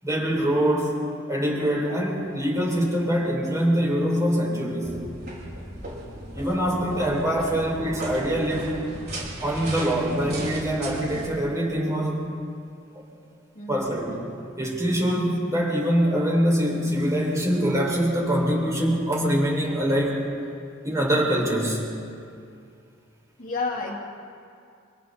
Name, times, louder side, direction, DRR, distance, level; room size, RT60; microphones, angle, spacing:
voice 1, 0.0-1.0 1.3-4.9 6.3-8.8 9.4-12.3 12.9-13.0 13.7-14.2 14.6-20.3 20.8-21.8, equal, 15° right, -3 dB, 5.7 m, -24 dB
sound 1, 4.8-11.3, right 1 dB, 50° right, 4.9 m, -37 dB
voice 2, 13.5-14.1 23.4-24.0, left 3 dB, 40° left, -1 dB, 2.7 m, -31 dB
28.0 x 26.5 x 4.3 m, 2.4 s
head